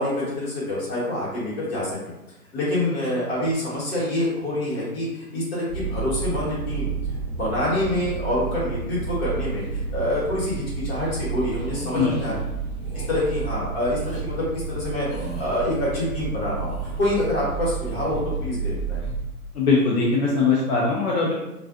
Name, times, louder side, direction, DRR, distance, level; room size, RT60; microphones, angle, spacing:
voice 1, 0.0-2.0 2.5-6.9 7.3-12.3 12.9-16.7 17.0-19.0, left 1 dB, 40° left, -6 dB, 1.3 m, -26 dB
sound 1, 5.7-19.2, right 5 dB, 15° right, 1.0 m, -31 dB
sound 2, 11.6-12.1 12.8-13.2 13.9-14.2 15.1-15.7 16.4-17.1 17.7-18.4 18.8-19.2, right 1 dB, 5° left, 0.5 m, -39 dB
voice 2, 11.9-12.4 19.5-21.3, left 4 dB, 75° left, -3 dB, 0.7 m, -21 dB
2.4 x 2.2 x 2.4 m, 0.94 s
hypercardioid pair, 150°, 46 cm